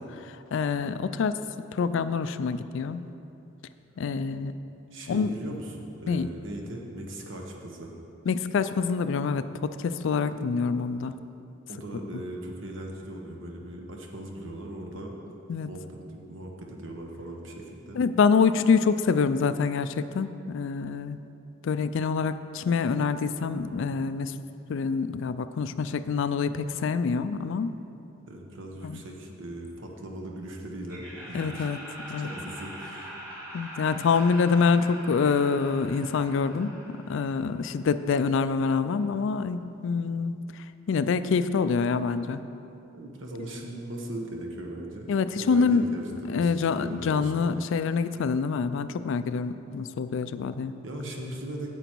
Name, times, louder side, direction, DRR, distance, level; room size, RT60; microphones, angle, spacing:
voice 1, 0.3-1.4 1.7-3.1 4.0-4.5 5.1-5.3 6.1-6.3 8.3-11.1 15.5-15.7 17.9-21.2 21.6-24.3 24.7-27.7 28.8-29.0 31.3-31.8 32.1-32.3 33.5-40.4 40.9-42.4 45.1-50.8, left 5 dB, 65° left, 12 dB, 0.3 m, -26 dB
voice 2, 4.9-7.9 11.7-15.1 15.6-15.8 16.1-18.0 28.3-31.7 32.2-33.1 42.9-45.1 45.4-47.5 50.8-51.7, right 1 dB, 65° right, 1 dB, 1.2 m, -39 dB
Laughter, 30.9-37.8, equal, 10° right, 2.0 m, -43 dB
9.1 x 8.1 x 4.5 m, 2.8 s
head